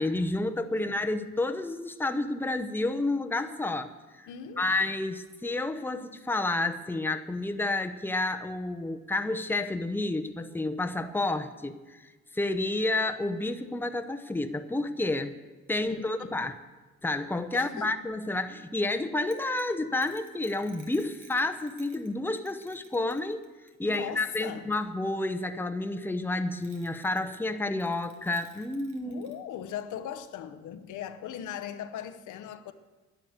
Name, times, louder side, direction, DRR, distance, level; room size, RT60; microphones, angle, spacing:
voice 1, 0.0-3.9 4.2-4.3 4.6-15.3 15.7-16.6 17.0-23.4 23.8-29.2, left 2 dB, 5° left, 0.8 m, -30 dB
voice 2, 4.3-4.8 15.8-16.3 17.5-17.9 23.8-24.7 29.0-32.7, left 9 dB, 80° left, 0.9 m, -39 dB
sound 1, 19.3-22.1 22.4-24.8 26.6-27.5 27.8-29.3 29.7-29.8 30.0-30.1, right 6 dB, 75° right, 2.0 m, -56 dB
10.5 x 10.5 x 8.0 m
cardioid pair, 90°, 30 cm